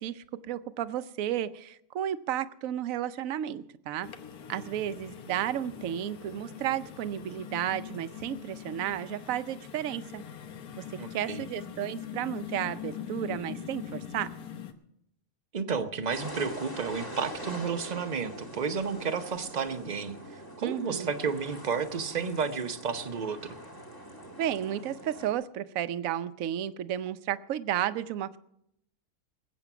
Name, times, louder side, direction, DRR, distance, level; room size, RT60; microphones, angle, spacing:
voice 1, 0.0-4.1 4.5-10.2 11.1-14.3 20.6-21.1 24.4-28.4, right 11 dB, 70° right, 13 dB, 1.0 m, -33 dB
sound 1, 4.0-14.7, left 9 dB, 85° left, 1.6 m, -42 dB
voice 2, 11.0-11.5 15.5-23.6, right 5 dB, 35° right, 8 dB, 0.8 m, -32 dB
sound 2, 16.1-25.3, right 1 dB, 15° left, 1.4 m, -43 dB
20.0 x 8.4 x 6.0 m, 0.76 s
omnidirectional pair, 1.5 m